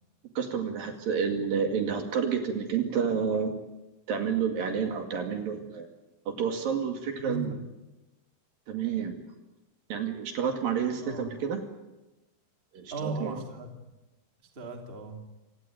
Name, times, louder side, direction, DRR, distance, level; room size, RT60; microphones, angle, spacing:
voice 1, 0.4-3.5 4.1-5.9 6.3-7.5 8.7-9.2 9.9-11.6 12.7-13.4, right 7 dB, 60° right, 5 dB, 3.7 m, -29 dB
voice 2, 7.2-7.7 11.0-11.3 12.9-13.7 14.5-15.2, right 2 dB, 15° right, 3 dB, 2.1 m, -36 dB
28.0 x 18.0 x 9.2 m, 1.0 s
omnidirectional pair, 4.9 m